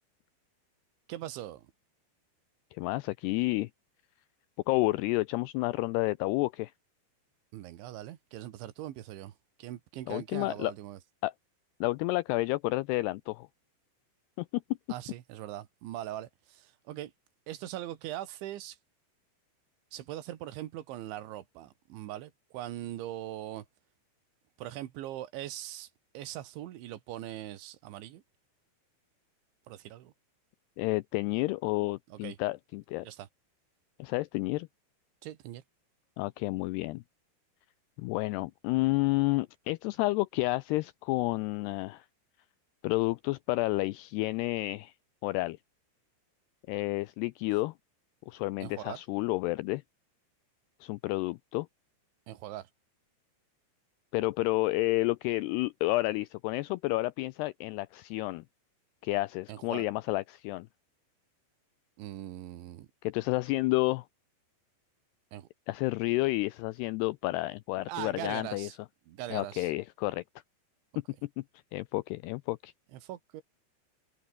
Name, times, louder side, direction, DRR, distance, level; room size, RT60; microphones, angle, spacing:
voice 1, 1.1-1.7 7.5-9.3 9.6-11.0 14.9-17.1 17.5-18.8 19.9-23.7 24.6-25.9 26.2-28.2 29.7-30.1 32.1-32.4 33.0-33.3 35.2-35.6 48.6-49.0 52.3-52.7 59.5-59.9 62.0-62.9 65.3-65.5 67.9-68.8 69.1-69.7 72.9-73.4, right 13 dB, 85° right, 4.0 m, -41 dB
voice 2, 2.7-3.7 4.7-6.7 10.1-10.7 11.2-11.3 11.8-13.5 14.4-14.6 30.8-33.1 34.0-34.7 36.2-37.0 38.0-42.1 42.8-44.9 45.2-45.6 46.7-47.7 48.3-49.8 50.8-51.7 54.1-58.4 59.0-60.7 63.0-64.1 65.7-68.7 69.3-70.2 71.2-71.4 71.7-72.7, left 20 dB, 85° left, 2.3 m, -30 dB
omnidirectional pair, 5.3 m